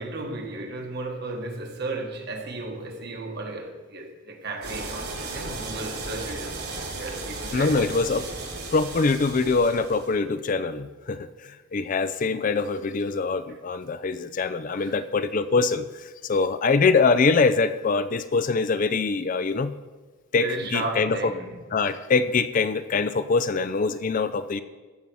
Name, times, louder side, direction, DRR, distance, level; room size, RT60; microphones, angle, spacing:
voice 1, 0.0-6.6 7.0-7.9 14.8-15.0 20.4-21.5, right 2 dB, 50° right, 1.4 m, -34 dB
sound 1, 4.6-10.1, right 3 dB, 85° right, 3.8 m, -35 dB
voice 2, 7.5-8.3 8.7-19.7 20.3-20.5 20.7-21.3 21.7-24.6, left 4 dB, 35° left, 0.4 m, -24 dB
14.5 x 5.6 x 6.2 m
head